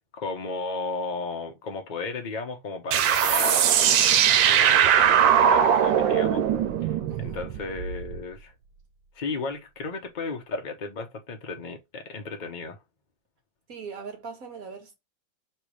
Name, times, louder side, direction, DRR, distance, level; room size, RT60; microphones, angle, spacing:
voice 1, 0.1-3.7 4.4-6.4 6.8-8.5 9.1-12.8, left 3 dB, 35° left, 0.9 m, -34 dB
sound 1, 2.9-8.2, right 9 dB, 90° right, 1.4 m, -20 dB
voice 2, 7.1-7.5 13.7-14.9, right 5 dB, 50° right, 1.5 m, -40 dB
3.4 x 3.3 x 4.7 m
omnidirectional pair, 2.0 m